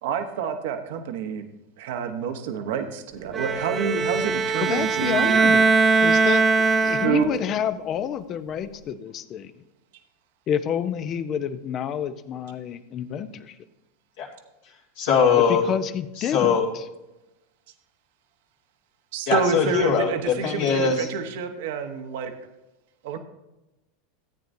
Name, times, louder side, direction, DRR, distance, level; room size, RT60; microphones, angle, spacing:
voice 1, 0.0-1.5 1.8-5.3 6.9-7.3 19.1-22.3 23.0-23.2, right 7 dB, 65° right, 6 dB, 1.0 m, -28 dB
Bowed string instrument, 3.3-7.5, right 4 dB, 30° right, 0.6 m, -21 dB
voice 2, 4.6-5.7 6.0-9.5 10.5-13.6 15.5-16.8, left 9 dB, 40° left, 12 dB, 0.7 m, -29 dB
voice 3, 15.0-15.6 16.3-16.6 19.3-21.1, left 6 dB, 70° left, -4 dB, 2.3 m, -21 dB
14.5 x 8.9 x 2.7 m, 0.96 s
hypercardioid pair, 90°, 0 cm